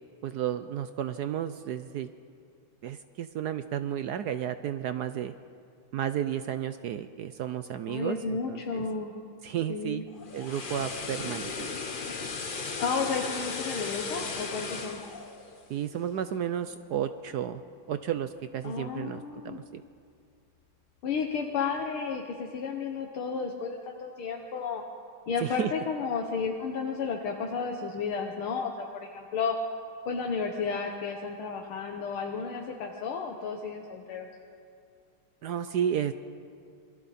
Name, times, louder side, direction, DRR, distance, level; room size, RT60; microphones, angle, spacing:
voice 1, 0.2-2.1 2.8-5.3 5.9-8.8 9.4-10.0 10.3-11.7 15.7-17.6 17.9-19.8 25.4-25.7 35.4-36.1, right 10 dB, 70° right, 11 dB, 0.9 m, -32 dB
voice 2, 7.9-9.1 9.7-10.0 12.8-15.0 18.6-19.6 21.0-24.8 25.3-29.6 30.1-34.3, left 5 dB, 85° left, 1 dB, 2.1 m, -32 dB
sound 1, 10.1-16.3 16.6-16.8, left 4 dB, 40° left, 0.8 m, -36 dB
27.5 x 23.0 x 4.2 m, 2.4 s
omnidirectional pair, 2.3 m